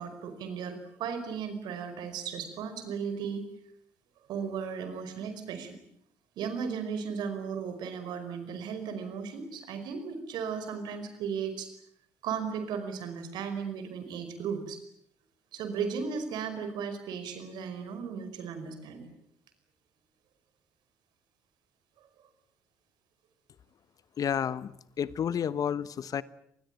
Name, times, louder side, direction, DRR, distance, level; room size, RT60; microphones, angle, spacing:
voice 1, 0.0-3.5 4.3-5.8 6.4-11.7 12.2-14.8 15.5-19.1, right 6 dB, 65° right, 5.1 m, -36 dB
voice 2, 24.2-24.7 25.0-26.2, left 8 dB, 50° left, 1.1 m, -30 dB
25.5 x 20.5 x 9.3 m
hypercardioid pair, 50°, 8 cm